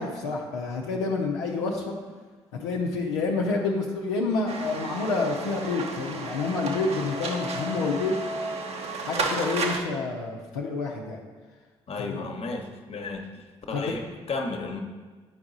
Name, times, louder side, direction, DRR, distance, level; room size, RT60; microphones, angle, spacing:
voice 1, 0.0-2.0 2.6-8.2 9.0-11.2 12.0-12.3 13.7-13.8, left 3 dB, 80° left, -2 dB, 0.6 m, -28 dB
sound 1, 4.5-9.8, right 3 dB, 50° right, 0.9 m, -32 dB
voice 2, 11.9-14.8, left 3 dB, 45° left, 4 dB, 1.0 m, -34 dB
8.8 x 4.8 x 3.9 m, 1.4 s
hypercardioid pair, 40°, 14 cm